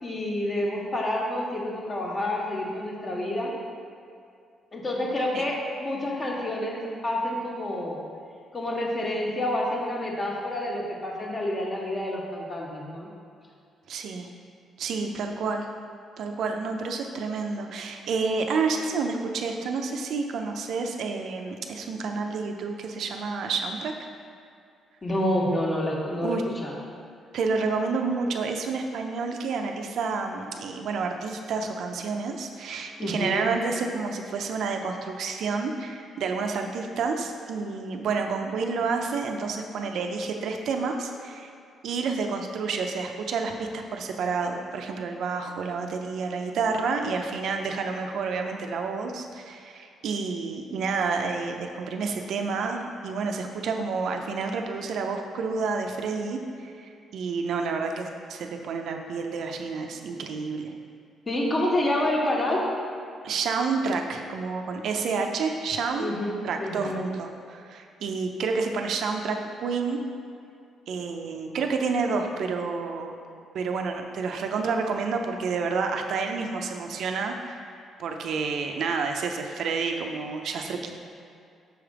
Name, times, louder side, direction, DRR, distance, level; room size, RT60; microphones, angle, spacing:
voice 1, 0.0-3.5 4.7-8.0 8.5-13.1 25.0-26.4 26.6-26.7 33.0-33.5 61.3-62.7 66.0-67.0, left 1 dB, 35° left, -3 dB, 1.2 m, -28 dB
voice 2, 13.9-14.3 14.8-15.7 16.2-23.9 26.1-26.4 27.3-41.5 41.8-60.7 63.2-66.1 66.4-70.0 70.9-73.1 73.5-81.0, right 4 dB, 70° right, 4 dB, 0.5 m, -29 dB
6.2 x 3.4 x 4.8 m, 2.4 s
cardioid pair, 90°, 0 cm